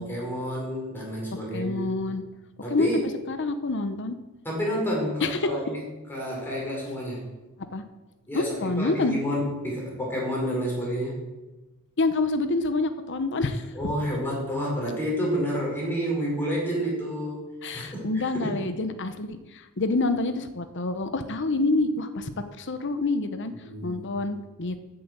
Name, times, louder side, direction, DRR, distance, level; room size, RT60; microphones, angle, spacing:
voice 1, 0.0-2.0 2.6-3.0 4.4-5.8 6.1-7.3 8.3-11.2 13.7-17.5 17.7-18.5 23.5-24.2, equal, 10° left, -4 dB, 5.2 m, -30 dB
voice 2, 1.5-2.2 2.7-4.2 5.2-5.5 7.7-7.8 8.3-9.2 12.0-13.9 17.6-22.3 22.6-23.5 23.8-24.8, left 2 dB, 55° left, 10 dB, 0.9 m, -27 dB
15.0 x 7.9 x 6.8 m, 1.1 s
head